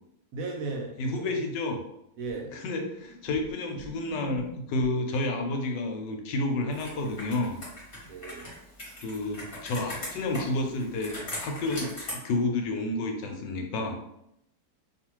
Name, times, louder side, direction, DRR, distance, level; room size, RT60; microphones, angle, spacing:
voice 1, 0.3-1.3 2.2-2.5 8.0-8.5, right 3 dB, 70° right, 1 dB, 0.8 m, -36 dB
voice 2, 1.0-1.8 2.6-7.6 9.0-14.0, left 2 dB, 80° left, 3 dB, 1.2 m, -30 dB
sound 1, 2.3-5.2 8.0-8.1, right 2 dB, 85° right, 1.3 m, -47 dB
Computer keyboard, 6.7-12.1, left 1 dB, 40° left, 1.0 m, -40 dB
2.7 x 2.4 x 2.9 m, 0.80 s
omnidirectional pair, 1.9 m